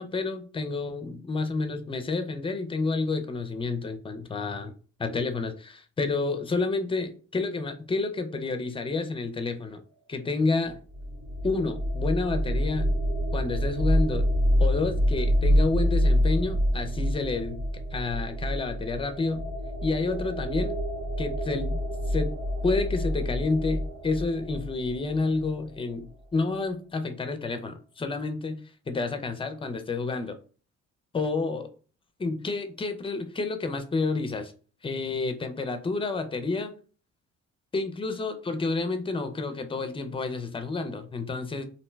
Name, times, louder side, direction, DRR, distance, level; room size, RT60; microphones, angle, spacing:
voice 1, 0.0-4.7 5.0-9.8 10.1-10.8 11.4-12.8 13.3-14.3 14.6-17.6 17.9-19.4 19.8-20.7 21.2-21.8 22.1-22.3 22.6-28.6 28.9-30.4 31.1-31.7 32.2-34.5 34.8-36.7 37.7-41.6, left 3 dB, 20° left, 7 dB, 0.4 m, -29 dB
sound 1, 10.7-25.5, equal, 65° right, 1.1 m, -27 dB
2.6 x 2.1 x 3.2 m, 0.40 s
cardioid pair, 90°, 30 cm